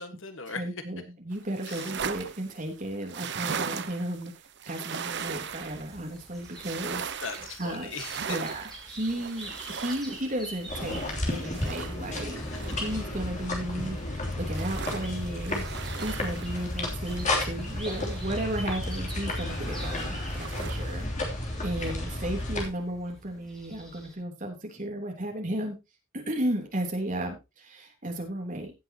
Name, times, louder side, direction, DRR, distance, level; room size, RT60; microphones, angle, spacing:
voice 1, 0.0-0.7 1.7-1.9 7.2-8.4 12.3-12.6, left 4 dB, 65° left, 8 dB, 1.6 m, -39 dB
voice 2, 0.5-4.3 4.7-7.1 7.6-7.9 8.3-12.4 12.8-15.6 16.0-21.1 21.6-25.8 26.1-28.7, right 1 dB, 40° right, 2 dB, 3.3 m, -34 dB
sound 1, 1.3-13.5 13.9-19.2 19.5-21.0, right 6 dB, 55° right, 0.8 m, -39 dB
sound 2, 5.1-24.1, right 1 dB, ahead, 3.7 m, -47 dB
sound 3, 10.7-22.7, left 1 dB, 35° left, 3.1 m, -32 dB
16.5 x 8.0 x 2.9 m, 0.25 s
head